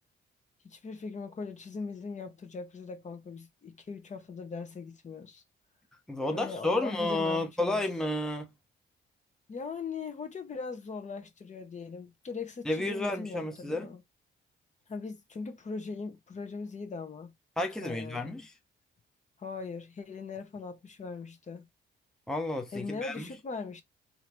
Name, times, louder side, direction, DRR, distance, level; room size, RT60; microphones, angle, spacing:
voice 1, 0.6-5.4 6.3-7.8 9.5-14.0 14.9-17.3 17.8-18.4 19.4-21.7 22.7-23.8, left 4 dB, 35° left, 1.1 m, -40 dB
voice 2, 6.1-8.5 12.6-13.9 17.6-18.5 22.3-23.3, left 2 dB, 5° left, 0.9 m, -31 dB
3.9 x 2.9 x 3.1 m
cardioid pair, 90°, 20 cm